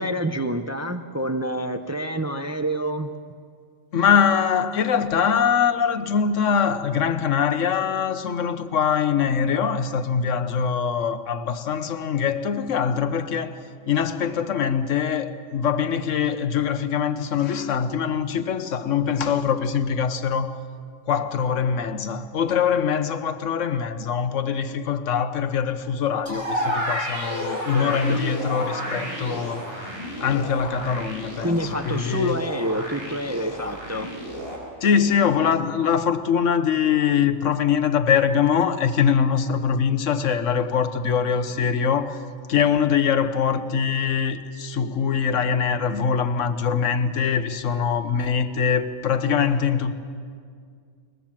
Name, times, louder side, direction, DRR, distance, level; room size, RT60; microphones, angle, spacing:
voice 1, 0.0-3.1 27.7-28.2 31.4-34.1, equal, 20° right, 0.5 m, -27 dB
voice 2, 3.9-13.6 13.9-20.6 21.1-29.7 30.2-32.5 34.8-42.2 42.5-49.9, left 7 dB, 80° left, 1.3 m, -23 dB
sound 1, 26.3-34.6, equal, 50° right, 5.9 m, -31 dB
22.0 x 21.0 x 7.4 m
omnidirectional pair, 1.3 m